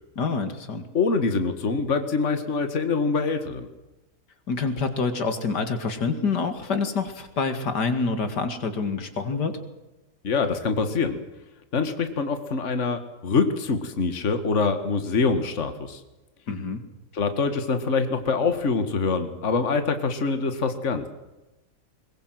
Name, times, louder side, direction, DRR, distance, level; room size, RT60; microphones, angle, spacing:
voice 1, 0.2-0.9 4.5-9.6 16.5-16.8, left 4 dB, 80° left, 9 dB, 2.7 m, -27 dB
voice 2, 0.9-3.7 10.2-11.2 11.7-16.0 17.1-21.1, left 4 dB, 45° left, 8 dB, 2.1 m, -25 dB
22.0 x 21.0 x 7.8 m, 1.0 s
omnidirectional pair, 1.8 m